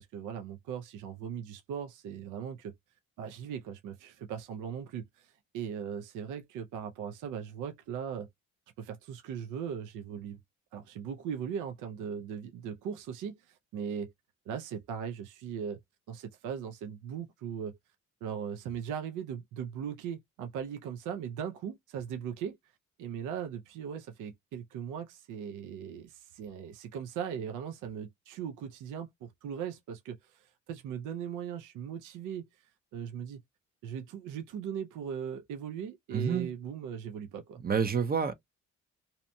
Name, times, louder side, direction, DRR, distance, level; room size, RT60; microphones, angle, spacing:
voice 1, 0.0-2.7 3.2-8.3 8.8-10.4 10.7-14.1 14.5-15.8 16.1-17.8 18.2-22.6 23.0-32.5 32.9-33.4 33.8-37.6, right 8 dB, 85° right, 0.5 m, -39 dB
voice 2, 36.1-36.5 37.6-38.3, right 6 dB, 30° right, 0.5 m, -28 dB
2.8 x 2.1 x 2.6 m
cardioid pair, 90°, 30 cm